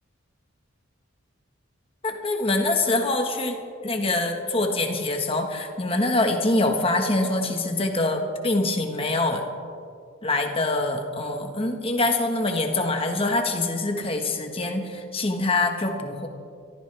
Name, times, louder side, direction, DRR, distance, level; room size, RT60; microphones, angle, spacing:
voice 1, 2.0-3.6 3.8-9.4 10.2-16.3, left 2 dB, 30° left, 4 dB, 1.4 m, -24 dB
25.0 x 14.0 x 3.4 m, 2.3 s
head